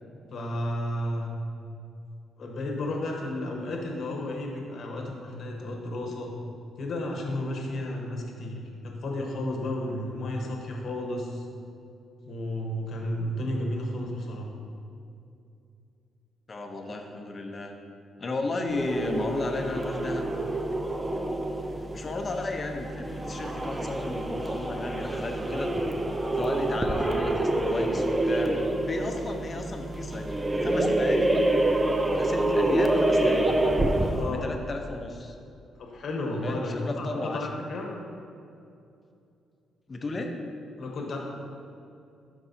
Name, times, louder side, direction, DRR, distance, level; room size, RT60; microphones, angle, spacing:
voice 1, 0.3-1.3 2.4-6.3 6.8-11.4 12.3-14.5 34.1-34.5 35.8-38.0 40.8-41.2, left 1 dB, 60° left, 0 dB, 1.1 m, -32 dB
voice 2, 16.5-17.7 18.2-20.3 21.1-21.6 21.9-25.8 26.3-28.5 28.9-31.4 32.1-33.6 34.3-35.3 36.4-37.5 39.9-40.4, left 2 dB, 35° left, 4 dB, 0.8 m, -34 dB
sound 1, 18.7-34.4, right 1 dB, 15° right, 0.5 m, -27 dB
12.0 x 4.7 x 2.7 m, 2.6 s
cardioid pair, 90°, 0 cm